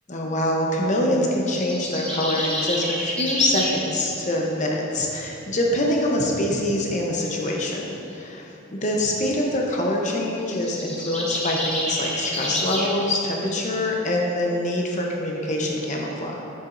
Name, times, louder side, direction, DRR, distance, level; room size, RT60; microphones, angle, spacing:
voice 1, 0.1-16.4, left 1 dB, 40° left, -1 dB, 0.8 m, -24 dB
sound 1, 1.5-3.8 10.4-12.9, equal, 5° left, 1.1 m, -28 dB
8.8 x 7.7 x 2.6 m, 2.8 s
head